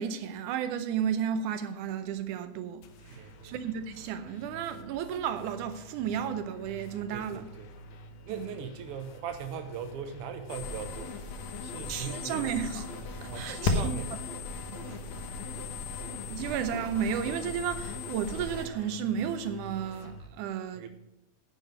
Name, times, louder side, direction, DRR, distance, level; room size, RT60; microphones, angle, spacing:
voice 1, 0.0-7.5 8.3-8.5 11.9-12.9 13.2-14.0 14.7-14.8 16.3-20.9, right 8 dB, 85° right, 2.2 m, -33 dB
sound 1, 2.8-20.3, equal, 85° left, 2.4 m, -48 dB
voice 2, 3.1-3.5 7.1-7.7 8.2-12.5 13.2-14.2 16.3-16.5 20.7-20.9, right 7 dB, 60° right, 1.6 m, -40 dB
sound 2, 10.5-18.7, left 4 dB, 65° left, 2.4 m, -36 dB
10.0 x 7.6 x 5.2 m
omnidirectional pair, 3.5 m